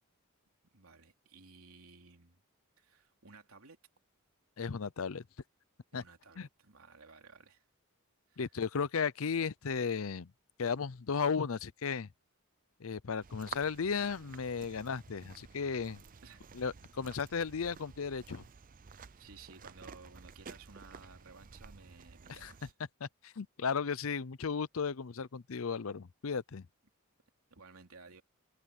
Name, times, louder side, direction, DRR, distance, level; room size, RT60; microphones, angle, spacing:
voice 1, 0.7-2.4 2.8-3.8 5.9-7.6 8.3-8.4 16.2-16.5 19.2-22.7 27.5-28.2, right 4 dB, 75° right, 3.2 m, -56 dB
voice 2, 4.6-5.2 5.9-6.0 6.4-6.5 8.4-10.3 10.6-12.1 12.8-16.0 16.5-18.4 22.4-22.5 23.0-26.7, left 5 dB, 70° left, 0.6 m, -35 dB
sound 1, 13.2-22.7, right 6 dB, 40° right, 0.6 m, -52 dB
head